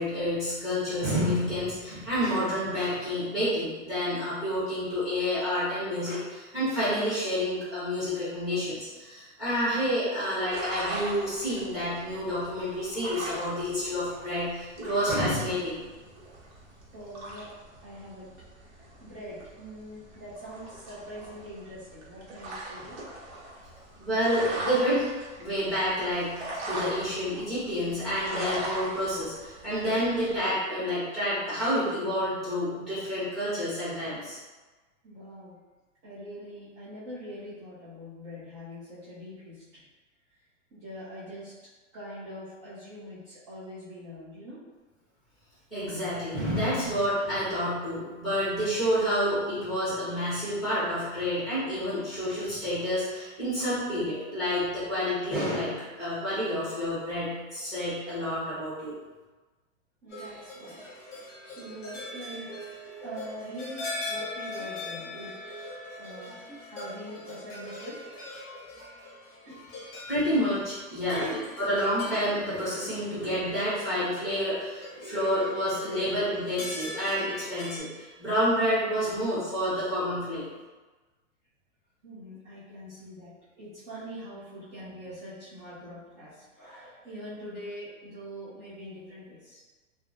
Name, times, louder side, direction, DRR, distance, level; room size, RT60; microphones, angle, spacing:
voice 1, 0.0-15.8 24.0-25.1 25.4-34.4 45.7-58.9 70.1-71.2 71.6-80.4, equal, ahead, -12 dB, 1.1 m, -29 dB
sound 1, 10.5-30.4, right 1 dB, 80° right, 0.9 m, -40 dB
voice 2, 16.9-18.4 18.7-23.0 35.0-35.6 36.0-39.8 40.7-41.5 41.9-44.6 45.9-46.0 46.8-46.9 49.2-49.3 60.0-60.9 61.4-62.5 63.0-65.4 66.0-66.4 66.7-68.2 69.5-69.6 70.2-70.3 71.1-71.4 72.5-72.6 82.0-83.3 83.6-89.6, equal, 30° right, -12 dB, 0.7 m, -43 dB
sound 2, 60.1-77.8, left 2 dB, 25° left, 0.9 m, -41 dB
3.1 x 2.2 x 2.5 m, 1.3 s
supercardioid pair, 165°, 40 cm